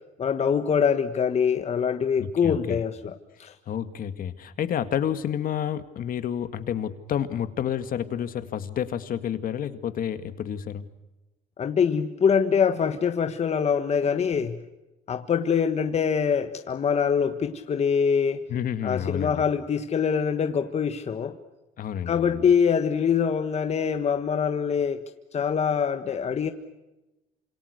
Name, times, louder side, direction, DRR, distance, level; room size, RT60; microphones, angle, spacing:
voice 1, 0.2-3.5 11.6-14.6 15.1-18.4 18.8-21.4 22.1-25.0 25.3-26.5, left 7 dB, 40° left, 7 dB, 1.5 m, -24 dB
voice 2, 2.2-2.8 3.7-10.8 18.5-19.4 21.8-22.4, left 9 dB, 55° left, 10 dB, 2.0 m, -30 dB
28.0 x 27.0 x 6.6 m, 1.0 s
cardioid pair, 110°, 17 cm